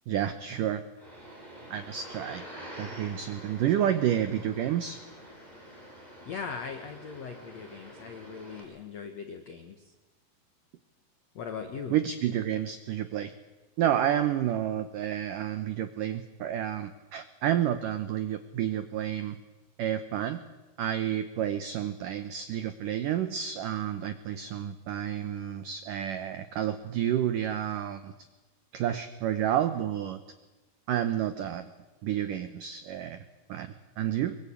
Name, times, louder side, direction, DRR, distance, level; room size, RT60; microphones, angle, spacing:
voice 1, 0.1-0.8 1.7-2.4 2.8-5.0 11.9-13.3 13.8-19.4 19.8-20.4 20.8-28.1 28.7-30.2 30.9-31.7 32.0-33.2 33.5-34.4, right 10 dB, 80° right, 10 dB, 1.9 m, -30 dB
sound 1, 1.0-8.6, equal, 10° right, 5.7 m, -47 dB
voice 2, 6.2-9.9 11.3-12.0, left 6 dB, 75° left, 6 dB, 1.5 m, -40 dB
23.0 x 22.5 x 8.6 m, 1.1 s
omnidirectional pair, 5.2 m